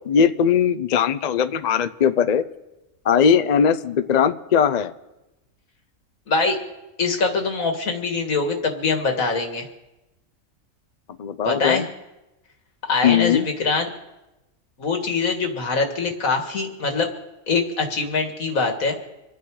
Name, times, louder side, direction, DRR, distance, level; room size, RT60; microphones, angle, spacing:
voice 1, 0.1-2.4 3.1-4.9 11.2-11.8 13.0-13.5, left 7 dB, 50° left, 12 dB, 0.5 m, -19 dB
voice 2, 7.0-9.7 11.4-11.8 12.8-13.9 14.8-17.1 17.5-19.0, left 4 dB, 80° left, 4 dB, 2.2 m, -23 dB
26.5 x 9.3 x 4.8 m, 0.99 s
omnidirectional pair, 1.4 m